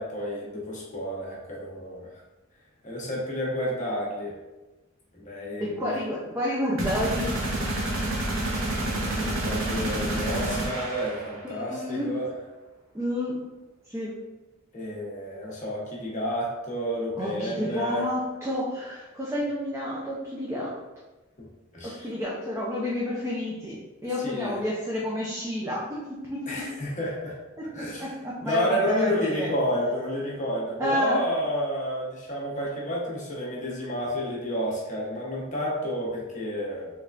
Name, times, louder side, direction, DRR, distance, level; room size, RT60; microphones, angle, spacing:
voice 1, 0.0-2.1 2.8-4.4 5.1-5.9 8.2-8.4 8.7-12.3 14.7-18.0 21.4-21.5 21.7-22.0 24.2-24.6 26.5-27.4 27.7-28.1 28.4-36.9, equal, 35° left, -4 dB, 0.9 m, -30 dB
voice 2, 5.6-7.4 11.4-12.2 12.9-13.4 13.9-14.2 17.2-20.8 21.8-26.7 27.6-29.5 30.8-31.2, equal, 15° right, -5 dB, 0.5 m, -30 dB
sound 1, 6.8-11.5, right 1 dB, 75° right, 0.8 m, -29 dB
3.5 x 3.2 x 2.5 m, 1.1 s
head